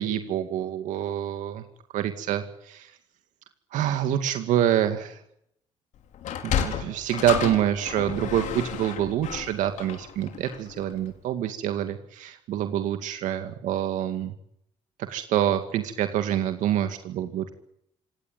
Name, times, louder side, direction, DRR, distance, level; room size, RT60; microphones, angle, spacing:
voice 1, 0.0-1.6 1.9-2.9 3.7-5.2 6.4-14.3 15.0-17.5, right 11 dB, 85° right, 7 dB, 2.3 m, -26 dB
Sliding door, 6.1-10.8, left 9 dB, 75° left, 4.4 m, -31 dB
25.5 x 18.0 x 9.6 m, 0.74 s
cardioid pair, 105°, 13 cm